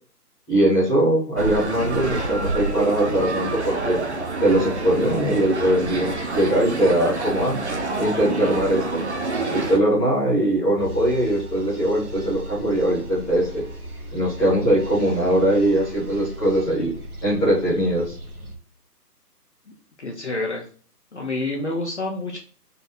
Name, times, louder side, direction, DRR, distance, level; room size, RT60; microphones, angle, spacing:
voice 1, 0.5-4.0 4.4-7.6 8.0-9.0 9.5-13.6 14.1-16.9 17.2-18.1, right 1 dB, 5° left, -11 dB, 1.3 m, -21 dB
sound 1, 1.4-9.8, right 3 dB, 45° right, 0.7 m, -27 dB
sound 2, 10.8-18.5, right 1 dB, 65° right, 1.4 m, -37 dB
voice 2, 20.0-20.7 21.1-22.4, left 2 dB, 45° left, 0 dB, 0.8 m, -28 dB
4.2 x 3.2 x 3.8 m, 0.41 s
figure-of-eight pair, 160°, 48 cm